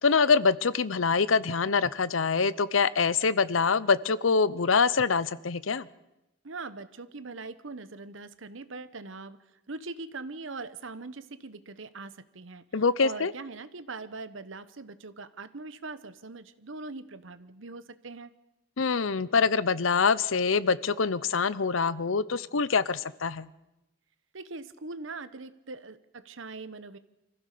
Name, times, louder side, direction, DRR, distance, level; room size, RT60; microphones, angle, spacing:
voice 1, 0.0-5.9 12.7-13.3 18.8-23.5, left 5 dB, 85° left, 18 dB, 0.7 m, -25 dB
voice 2, 6.4-9.4 9.7-12.6 13.0-18.3 24.3-27.0, right 3 dB, 75° right, 13 dB, 1.1 m, -41 dB
25.5 x 15.0 x 6.8 m, 0.93 s
head